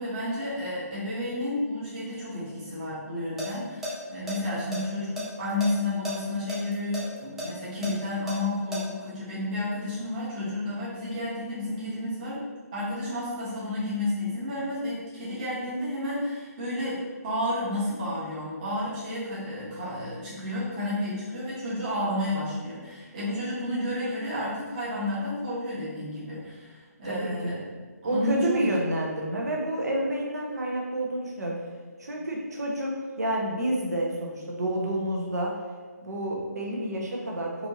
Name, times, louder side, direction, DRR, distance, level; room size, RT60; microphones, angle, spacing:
voice 1, 0.0-12.4 12.7-27.5 28.0-28.7, left 1 dB, 25° right, -10 dB, 1.0 m, -31 dB
sound 1, 3.2-3.5 3.8-3.9 4.3-5.7 6.0-6.1 6.5-8.8, left 1 dB, 5° right, 0.4 m, -34 dB
voice 2, 27.0-27.3 28.0-31.6 32.0-35.6 36.0-37.7, right 1 dB, 70° right, -1 dB, 1.0 m, -29 dB
4.3 x 2.8 x 2.9 m, 1.5 s
hypercardioid pair, 165°, 9 cm